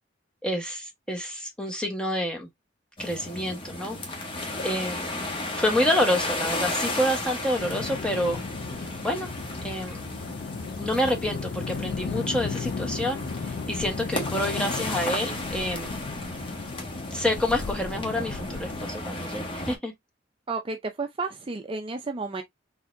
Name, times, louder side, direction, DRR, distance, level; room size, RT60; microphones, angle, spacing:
voice 1, 0.4-2.5 3.0-4.0 4.6-5.2 5.6-8.4 9.0-9.3 9.6-10.1 10.8-16.0 17.1-19.9, left 1 dB, 5° left, 1.1 m, -28 dB
sound 1, 3.0-19.8, left 2 dB, 30° left, 1.2 m, -34 dB
sound 2, 7.6-18.9, left 5 dB, 65° left, 0.4 m, -35 dB
voice 2, 20.5-22.4, right 3 dB, 30° right, 0.5 m, -32 dB
4.0 x 3.5 x 2.5 m
head